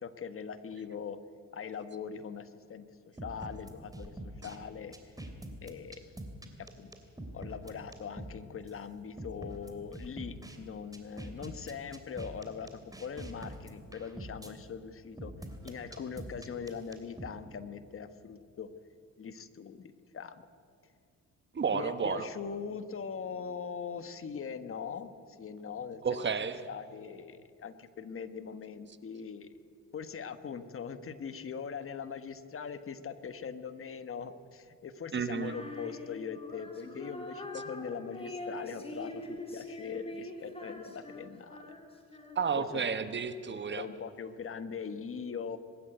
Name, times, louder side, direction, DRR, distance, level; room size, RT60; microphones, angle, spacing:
voice 1, 0.0-1.2 1.5-2.9 3.2-4.9 5.6-6.1 6.8-6.9 7.3-15.3 15.6-18.7 19.2-20.4 21.7-26.2 26.7-29.5 29.9-41.7 42.6-42.8 43.5-45.6, left 6 dB, 45° left, 11 dB, 1.3 m, -41 dB
sound 1, 3.2-4.6 4.9-8.4 8.7-8.8 9.2-10.6 10.9-14.5 15.2-17.3, right 1 dB, 10° right, 3.0 m, -44 dB
voice 2, 21.5-22.3 26.0-26.6 35.1-35.5 42.3-43.9, right 6 dB, 40° right, 11 dB, 1.2 m, -31 dB
Female singing, 35.3-42.7, left 1 dB, 20° left, 3.6 m, -44 dB
24.0 x 13.0 x 9.3 m, 2.4 s
cardioid pair, 90°, 30 cm